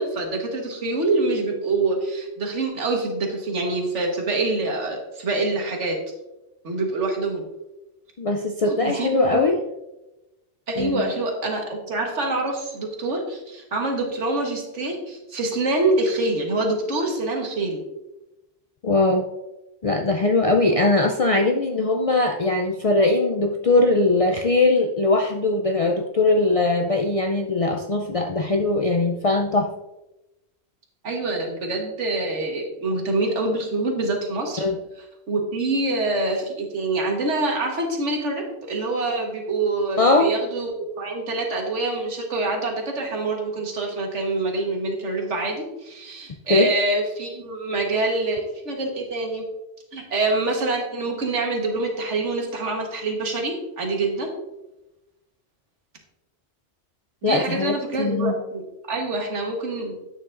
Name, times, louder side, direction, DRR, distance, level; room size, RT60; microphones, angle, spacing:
voice 1, 0.0-6.0 6.6-7.4 8.7-9.5 10.7-17.8 20.7-20.8 31.0-34.6 35.3-49.4 49.9-54.3 57.2-59.9, right 2 dB, 80° right, 1 dB, 1.7 m, -25 dB
voice 2, 8.2-9.6 10.8-11.1 18.8-19.3 19.8-29.7 34.6-34.8 40.0-40.3 46.5-46.7 57.2-58.4, left 2 dB, 55° left, 2 dB, 0.4 m, -21 dB
8.8 x 7.0 x 2.5 m, 0.97 s
omnidirectional pair, 1.2 m